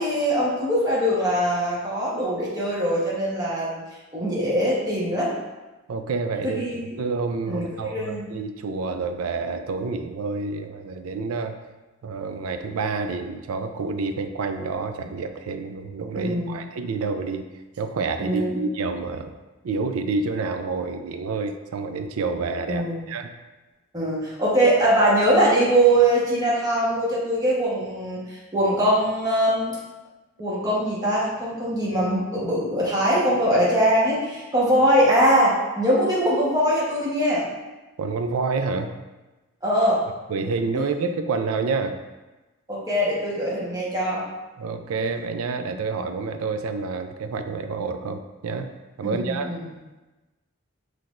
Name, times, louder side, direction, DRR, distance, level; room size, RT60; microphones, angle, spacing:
voice 1, 0.0-3.8 4.1-5.3 6.4-6.8 7.5-8.3 16.2-16.6 18.2-18.5 22.7-23.0 23.9-29.8 30.4-37.5 39.6-40.0 40.7-40.8 42.7-44.2 49.0-49.6, right 1 dB, 15° right, -7 dB, 1.1 m, -22 dB
voice 2, 5.9-6.6 7.0-11.6 12.0-17.5 17.8-19.3 19.6-23.3 38.0-38.9 40.3-42.0 44.6-48.7 49.0-49.5, right 4 dB, 80° right, 7 dB, 0.4 m, -28 dB
5.8 x 3.3 x 2.5 m, 1.1 s
head